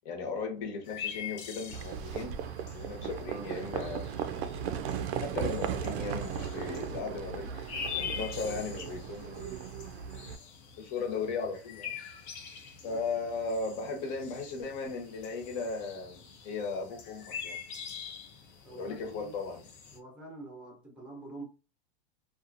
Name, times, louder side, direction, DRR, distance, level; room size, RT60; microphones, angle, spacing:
voice 1, 0.0-2.4 2.7-4.2 5.2-7.5 7.9-9.8 10.8-12.0 12.8-17.6 18.7-19.6, left 4 dB, 45° left, 1.0 m, -37 dB
sound 1, 0.8-20.0, left 7 dB, 25° left, 0.4 m, -44 dB
Livestock farm animals working animals, 1.7-10.4, right 8 dB, 65° right, 0.5 m, -36 dB
voice 2, 12.8-13.2 18.6-19.4 19.9-21.4, right 2 dB, 5° right, 0.7 m, -47 dB
2.7 x 2.4 x 2.5 m
supercardioid pair, 150°, 33 cm